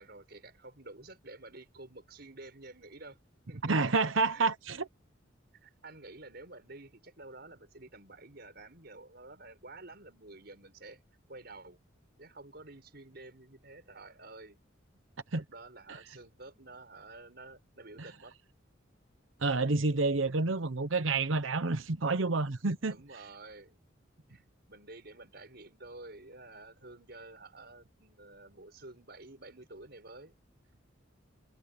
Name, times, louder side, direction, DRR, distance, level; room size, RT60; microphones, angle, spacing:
voice 1, 0.0-3.2 3.5-3.9 4.3-4.5 5.5-11.0 11.3-11.8 12.2-14.6 15.3-18.4 22.9-23.8 24.3-30.3, right 2 dB, 55° right, 5.8 m, -50 dB
voice 2, 3.6-4.9 15.3-15.4 19.4-23.0, right 3 dB, 80° right, 1.0 m, -29 dB
head